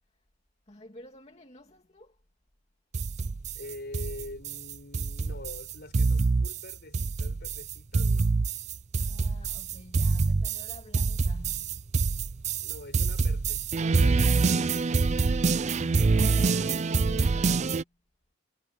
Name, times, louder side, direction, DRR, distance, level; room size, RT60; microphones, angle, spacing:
voice 1, 0.7-2.2 9.0-11.9 15.5-18.0, left 1 dB, 30° left, 2.4 m, -51 dB
sound 1, 2.9-17.8, right 4 dB, 35° right, 0.4 m, -26 dB
voice 2, 3.5-8.3 12.6-15.1, left 2 dB, 50° left, 5.2 m, -45 dB
head